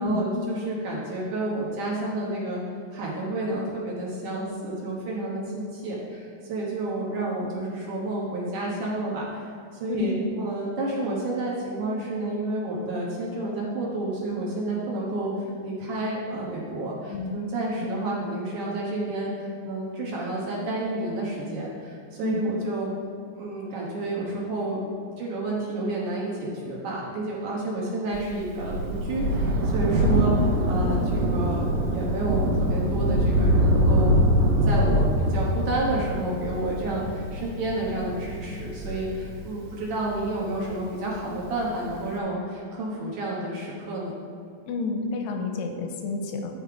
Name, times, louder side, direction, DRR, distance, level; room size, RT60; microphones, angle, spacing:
voice 1, 0.0-2.6 2.9-9.5 9.8-15.3 15.6-22.9 23.4-30.3 30.7-44.1, right 2 dB, 65° right, -4 dB, 2.3 m, -30 dB
voice 2, 9.9-10.3 17.1-17.4 22.2-22.5 30.0-30.1 44.7-46.5, left 3 dB, 90° left, 3 dB, 2.8 m, -29 dB
Thunder, 28.1-41.0 41.9-42.0, equal, 90° right, 3.1 m, -24 dB
11.0 x 5.5 x 4.7 m, 2.6 s
omnidirectional pair, 4.7 m